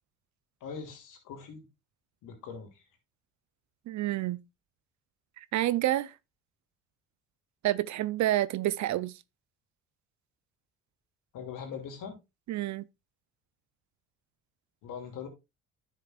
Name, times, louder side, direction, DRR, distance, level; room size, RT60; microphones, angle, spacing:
voice 1, 0.6-1.7 2.2-2.8 11.3-12.2 14.8-15.3, left 6 dB, 65° left, 2.8 m, -41 dB
voice 2, 3.9-4.4 5.5-6.1 7.6-9.1 12.5-12.8, right 14 dB, 55° right, 0.6 m, -28 dB
10.5 x 6.5 x 2.4 m
supercardioid pair, 65°, 34 cm